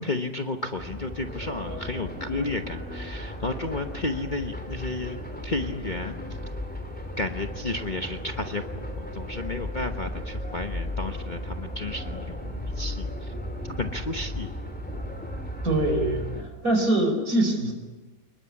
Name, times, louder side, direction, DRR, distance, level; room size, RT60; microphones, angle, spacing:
voice 1, 0.0-6.2 7.2-13.3 13.8-14.5, left 2 dB, 30° left, 5 dB, 1.1 m, -32 dB
sound 1, 0.8-16.4, left 1 dB, 5° left, 2.9 m, -35 dB
voice 2, 15.6-16.3 16.6-17.7, right 1 dB, 60° right, 5 dB, 5.3 m, -23 dB
28.5 x 20.5 x 8.6 m, 1.2 s
omnidirectional pair, 1.8 m